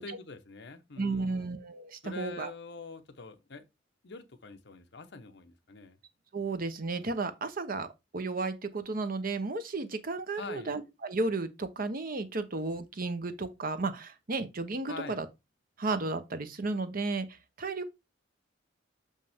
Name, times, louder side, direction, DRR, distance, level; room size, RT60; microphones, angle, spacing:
voice 1, 0.0-1.5 2.0-3.7 4.0-6.0 10.4-10.7 14.9-15.2, left 3 dB, 65° left, 0.8 m, -44 dB
voice 2, 1.0-2.5 6.3-7.9 8.1-15.3 15.8-17.9, right 3 dB, 50° right, 0.8 m, -33 dB
6.4 x 5.4 x 3.5 m
head